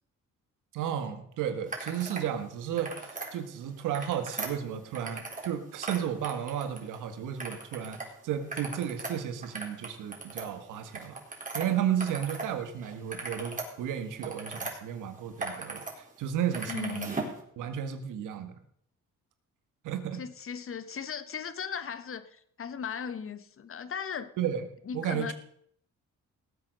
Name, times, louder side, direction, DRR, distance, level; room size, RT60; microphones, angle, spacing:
voice 1, 0.7-8.0 8.2-11.2 11.5-17.2 17.6-18.6 19.8-20.2 24.4-24.7 24.9-25.3, right 9 dB, 90° right, 8 dB, 1.8 m, -33 dB
sound 1, 1.7-2.3 2.6-3.3 3.8-5.5 5.8-7.0 7.4-8.1 8.4-12.5 12.8-14.7 15.2-15.9 16.2-17.4, right 3 dB, 25° right, 4.1 m, -38 dB
voice 2, 16.7-17.1 20.1-24.3 24.9-25.3, left 7 dB, 45° left, 12 dB, 1.3 m, -37 dB
18.0 x 8.2 x 6.5 m, 0.66 s
cardioid pair, 90°, 30 cm